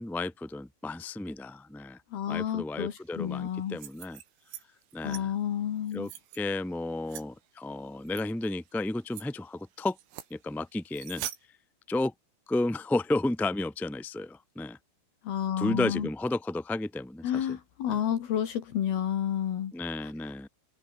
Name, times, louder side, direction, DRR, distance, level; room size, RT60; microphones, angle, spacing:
voice 1, 0.0-2.0 2.3-4.2 4.9-5.3 5.9-9.9 10.3-11.2 11.9-12.1 12.5-14.8 15.6-17.6 17.9-18.0 19.7-20.5, left 2 dB, ahead, 1.7 m, -32 dB
voice 2, 2.1-3.8 5.0-6.1 15.2-16.1 17.2-19.7, left 10 dB, 60° left, 3.4 m, -30 dB
sound 1, 3.6-4.6 4.9-5.2 5.8-6.4 7.1-7.2 8.1-8.2 8.7-8.8 9.1-9.3 9.9-10.3 10.9-11.4, right 12 dB, 80° right, 4.8 m, -42 dB
open air
omnidirectional pair, 5.9 m